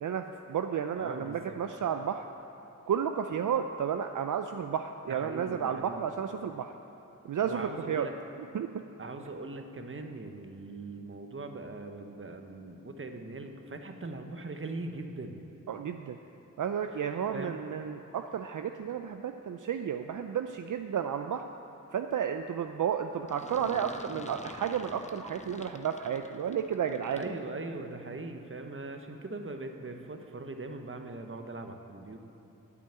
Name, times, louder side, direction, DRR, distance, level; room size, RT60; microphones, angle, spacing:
voice 1, 0.0-2.2 2.9-6.7 7.2-8.1 8.5-8.7 15.7-16.2 16.6-21.5 21.9-27.3, right 8 dB, 65° right, 7 dB, 0.5 m, -32 dB
voice 2, 0.9-1.6 5.1-6.0 7.4-8.1 9.0-15.4 17.3-17.6 27.1-32.2, right 2 dB, 40° right, 5 dB, 1.1 m, -40 dB
sound 1, 23.3-27.5, left 2 dB, 20° left, 0.7 m, -47 dB
9.2 x 8.5 x 8.7 m, 2.9 s
cardioid pair, 60°, 33 cm